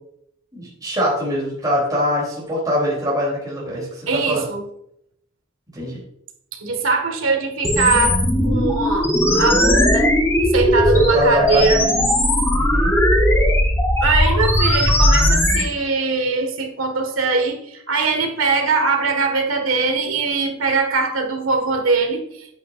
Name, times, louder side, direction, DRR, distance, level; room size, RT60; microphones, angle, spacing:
voice 1, 0.5-4.4 5.7-6.0 10.9-12.0 12.5-13.0, equal, 20° right, -5 dB, 3.3 m, -23 dB
voice 2, 4.1-4.6 6.6-9.1 9.3-10.1 10.5-11.8 14.0-22.5, right 4 dB, 85° right, 3 dB, 1.7 m, -21 dB
sound 1, 7.6-15.6, equal, 15° left, 1.1 m, -17 dB
9.4 x 8.8 x 2.6 m, 0.75 s
head